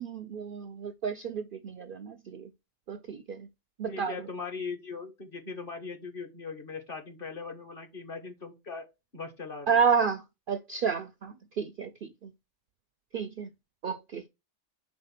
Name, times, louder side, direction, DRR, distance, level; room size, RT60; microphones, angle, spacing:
voice 1, 0.0-2.5 2.9-3.5 3.8-4.1 9.7-10.2 10.5-12.3 13.1-13.5 13.8-14.2, right 6 dB, 55° right, 0.6 m, -30 dB
voice 2, 3.9-8.8 9.1-9.8, left 4 dB, 45° left, 1.5 m, -39 dB
5.3 x 3.8 x 5.7 m
omnidirectional pair, 1.4 m